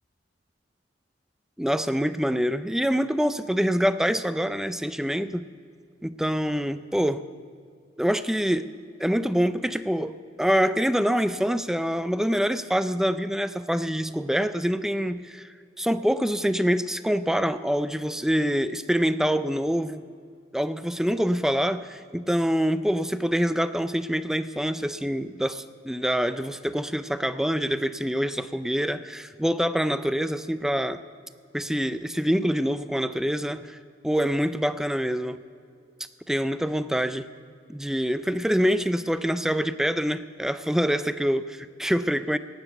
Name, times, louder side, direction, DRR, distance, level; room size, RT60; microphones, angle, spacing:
voice 1, 1.6-5.5 6.0-7.2 8.0-8.7 9.0-20.0 20.5-31.0 31.5-33.8 34.0-35.4 36.3-37.3 37.7-42.4, equal, 5° right, 12 dB, 0.4 m, -25 dB
18.0 x 7.1 x 8.0 m, 2.2 s
head